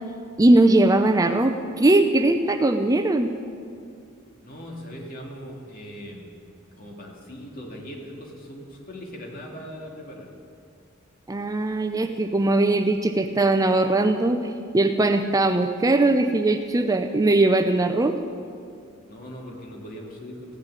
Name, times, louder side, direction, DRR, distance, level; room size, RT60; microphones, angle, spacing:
voice 1, 0.4-3.3 11.3-14.4 14.7-18.2, right 2 dB, 15° right, 7 dB, 0.5 m, -20 dB
voice 2, 4.4-6.3 6.7-10.3 19.1-20.6, equal, 45° left, -1 dB, 2.4 m, -40 dB
15.0 x 6.8 x 9.2 m, 2.3 s
head